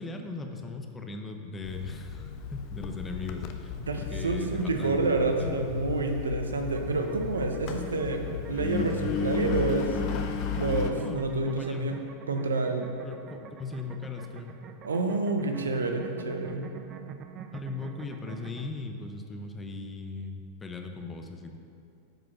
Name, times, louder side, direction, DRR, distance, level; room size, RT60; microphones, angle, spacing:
voice 1, 0.0-5.7 10.9-12.0 13.0-14.5 15.6-16.0 17.5-21.6, left 3 dB, 15° left, 4 dB, 0.8 m, -38 dB
Engine, 1.6-10.9, left 6 dB, 50° left, 0.7 m, -34 dB
voice 2, 3.8-10.0 10.6-12.0 12.3-12.9 14.8-16.7, right 3 dB, 85° right, 5 dB, 0.8 m, -29 dB
sound 1, 6.7-18.7, right 7 dB, 40° right, 0.5 m, -46 dB
7.8 x 5.1 x 5.9 m, 2.5 s
hypercardioid pair, 100°, 0 cm